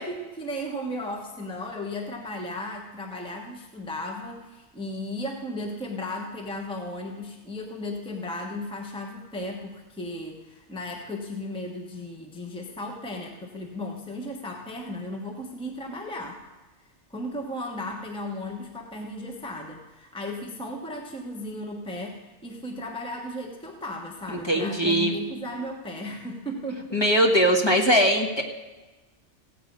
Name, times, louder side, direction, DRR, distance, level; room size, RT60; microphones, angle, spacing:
voice 1, 0.0-16.4 16.8-27.0, left 1 dB, 5° left, 1 dB, 1.1 m, -35 dB
voice 2, 24.5-25.1 26.9-28.4, equal, 20° left, 0 dB, 1.4 m, -20 dB
16.0 x 8.7 x 5.3 m, 1.2 s
omnidirectional pair, 1.2 m